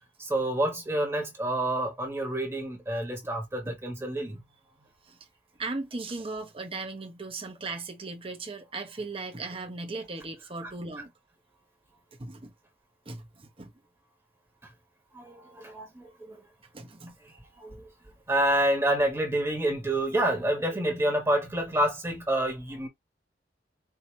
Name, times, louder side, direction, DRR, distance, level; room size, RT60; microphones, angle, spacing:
voice 1, 0.2-4.4 10.6-10.7 15.1-16.5 17.2-17.9 18.3-22.9, right 1 dB, 15° right, 1.3 m, -28 dB
voice 2, 5.6-11.1 12.2-12.5 13.1-13.7 16.7-17.1, right 3 dB, 30° right, 1.0 m, -37 dB
4.8 x 2.9 x 2.8 m
head